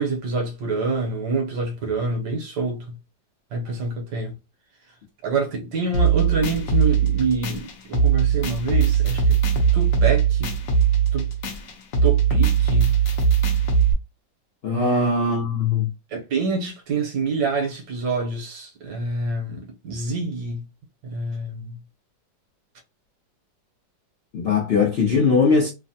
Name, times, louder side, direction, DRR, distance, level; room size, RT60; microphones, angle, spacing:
voice 1, 0.0-3.0 3.5-4.3 5.2-9.4 9.7-10.5 11.1-11.3 12.0-13.0 14.7-15.1 16.1-20.6 21.0-21.8, right 3 dB, 70° right, 1.3 m, -26 dB
sound 1, 5.9-13.9, right 7 dB, 60° left, 0.9 m, -20 dB
voice 2, 14.6-15.9 24.3-25.7, left 4 dB, 85° left, 0.5 m, -20 dB
3.2 x 2.1 x 2.7 m
omnidirectional pair, 2.0 m